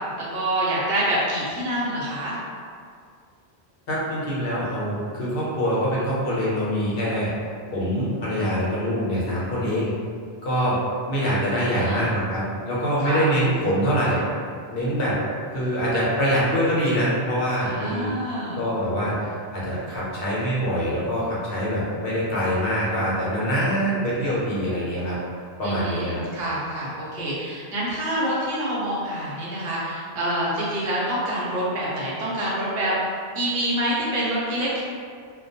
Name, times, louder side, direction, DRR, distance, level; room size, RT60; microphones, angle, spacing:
voice 1, 0.3-2.4 11.5-12.0 13.0-13.3 17.6-18.6 25.6-34.8, right 1 dB, 65° right, -7 dB, 0.9 m, -26 dB
voice 2, 3.9-7.3 7.7-9.9 10.4-10.8 11.1-14.2 14.7-15.2 15.5-18.1 18.5-25.2 25.6-26.2, equal, 65° left, -7 dB, 0.9 m, -24 dB
2.2 x 2.2 x 2.7 m, 2.1 s
omnidirectional pair, 1.1 m